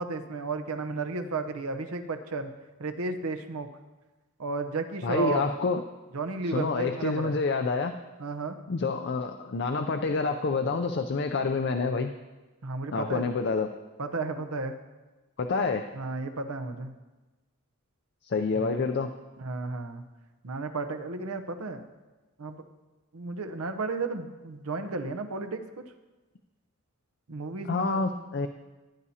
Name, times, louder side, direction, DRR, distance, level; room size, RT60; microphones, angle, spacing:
voice 1, 0.0-2.5 2.8-3.7 4.4-5.4 6.1-7.4 8.2-8.6 12.6-13.3 14.0-14.8 15.9-16.9 18.5-18.8 19.4-20.0 20.4-21.8 22.4-22.6 23.1-25.8 27.3-28.0, right 3 dB, 85° right, 7 dB, 0.8 m, -33 dB
voice 2, 5.0-5.8 6.4-7.9 8.7-12.1 12.9-13.7 15.4-15.9 18.2-19.1 27.6-28.5, left 4 dB, 50° left, 6 dB, 0.5 m, -28 dB
15.5 x 10.0 x 2.8 m, 1.2 s
head